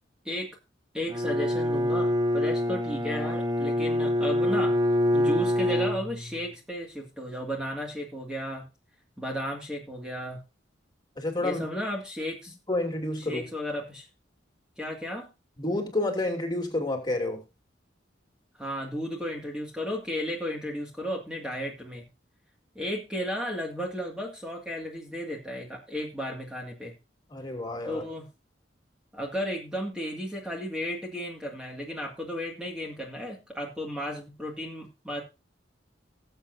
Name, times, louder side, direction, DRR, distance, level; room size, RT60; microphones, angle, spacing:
voice 1, 0.9-4.8 5.1-8.7 9.2-10.4 11.4-12.5 13.2-14.1 14.8-15.3 18.6-22.1 22.8-26.9 27.9-28.3 29.1-35.2, equal, 5° right, -1 dB, 2.0 m, -34 dB
Bowed string instrument, 1.1-6.5, left 1 dB, 20° right, 0.7 m, -26 dB
voice 2, 11.2-11.7 12.7-13.5 15.6-17.4 27.3-28.0, left 2 dB, 20° left, 2 dB, 2.8 m, -29 dB
19.0 x 8.0 x 2.6 m, 0.29 s
head